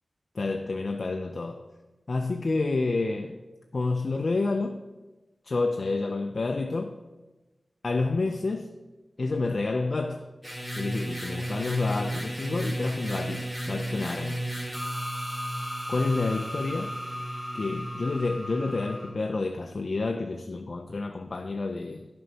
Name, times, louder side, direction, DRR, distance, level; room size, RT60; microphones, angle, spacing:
voice 1, 0.3-1.7 2.1-3.4 3.7-4.8 5.4-7.0 7.8-8.7 9.2-10.3 10.8-14.4 15.9-16.9 17.5-22.1, left 3 dB, 65° left, 0.4 m, -29 dB
sound 1, 10.4-19.1, equal, 10° right, 2.7 m, -34 dB
7.8 x 5.2 x 5.6 m
cardioid pair, 40°, 0 cm